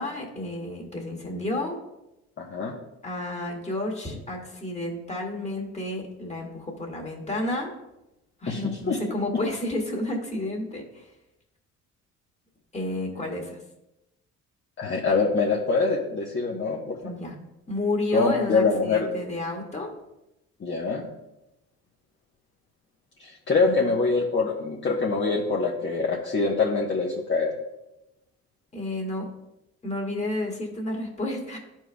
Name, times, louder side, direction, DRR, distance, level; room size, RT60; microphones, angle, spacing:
voice 1, 0.0-1.8 3.0-7.7 8.4-11.1 12.7-13.6 17.0-17.3 17.7-19.9 23.6-23.8 28.7-29.3 29.8-31.6, left 1 dB, 20° left, -1 dB, 1.9 m, -31 dB
voice 2, 2.4-2.7 8.5-9.0 14.8-17.0 18.1-19.1 20.6-21.0 23.2-27.5, left 4 dB, 40° left, -3 dB, 1.0 m, -24 dB
12.5 x 4.6 x 2.3 m, 0.92 s
cardioid pair, 90°, 30 cm